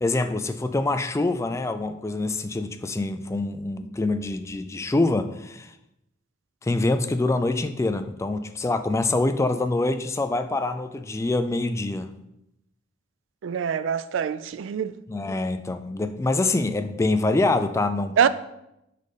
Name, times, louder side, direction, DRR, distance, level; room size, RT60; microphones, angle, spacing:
voice 1, 0.0-5.7 6.6-12.1 15.1-18.2, left 2 dB, 15° left, 0.3 m, -25 dB
voice 2, 13.4-15.0 18.2-18.3, right 7 dB, 70° right, 0.3 m, -24 dB
5.3 x 4.1 x 4.9 m
head